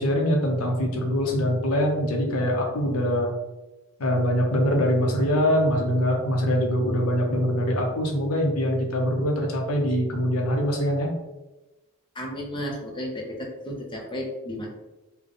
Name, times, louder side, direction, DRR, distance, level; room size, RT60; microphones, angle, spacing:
voice 1, 0.0-3.3 4.0-11.1, equal, 70° left, 1 dB, 0.7 m, -23 dB
voice 2, 12.1-14.7, equal, 20° left, 0 dB, 0.7 m, -33 dB
3.6 x 2.2 x 3.8 m, 1.0 s
head